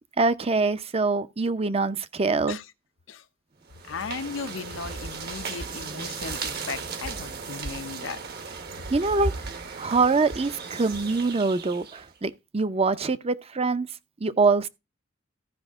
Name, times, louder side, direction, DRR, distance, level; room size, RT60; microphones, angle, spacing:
voice 1, 0.2-2.6 8.9-9.3 9.8-13.9 14.2-14.7, right 3 dB, 30° right, 0.6 m, -24 dB
sound 1, 3.7-12.1, right 4 dB, 55° right, 1.3 m, -36 dB
voice 2, 3.9-8.2 8.8-8.9, left 5 dB, 80° left, 0.8 m, -36 dB
14.5 x 5.3 x 3.6 m
head